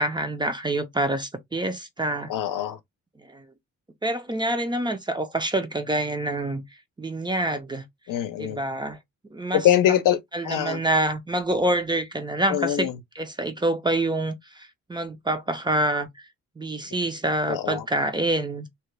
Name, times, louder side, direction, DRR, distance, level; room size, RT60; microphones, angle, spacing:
voice 1, 0.0-2.3 3.3-3.4 4.0-6.6 7.0-7.8 8.4-9.0 9.3-9.7 10.3-12.9 13.2-16.2 16.6-18.7, right 1 dB, 15° right, 0.4 m, -26 dB
voice 2, 2.3-2.8 8.1-8.6 9.5-10.2 10.4-10.8 12.5-12.9 17.5-17.8, left 11 dB, 80° left, 0.6 m, -23 dB
2.8 x 2.2 x 3.2 m
cardioid pair, 120°, 32 cm